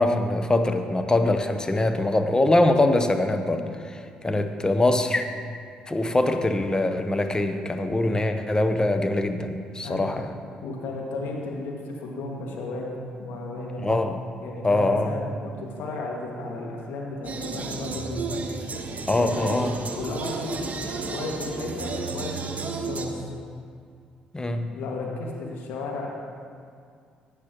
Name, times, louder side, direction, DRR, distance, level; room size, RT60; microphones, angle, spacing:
voice 1, 0.0-5.3 5.9-10.3 13.8-14.2 14.6-15.2 19.1-19.7 24.3-24.7, left 2 dB, 20° left, 7 dB, 1.0 m, -23 dB
voice 2, 10.6-12.9 13.2-13.9 14.4-18.4 19.1-19.5 19.9-23.2 24.7-26.1, left 2 dB, 60° left, -1 dB, 2.0 m, -34 dB
sound 1, 17.2-23.0, right 4 dB, 40° right, 1.2 m, -32 dB
16.0 x 9.8 x 3.0 m, 2.3 s
figure-of-eight pair, 45°, 4 cm